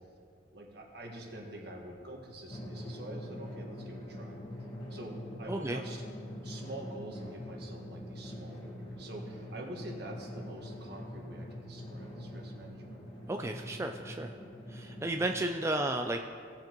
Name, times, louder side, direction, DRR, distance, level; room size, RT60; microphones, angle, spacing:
voice 1, 0.5-4.4 4.9-6.1 6.4-13.0, right 1 dB, 65° right, 0 dB, 1.7 m, -46 dB
Drum, 2.5-15.5, equal, 25° left, 1.6 m, -44 dB
voice 2, 5.5-5.8 13.3-14.4 14.7-16.3, right 2 dB, 15° right, 4 dB, 0.3 m, -33 dB
18.0 x 7.4 x 3.0 m, 2.3 s
head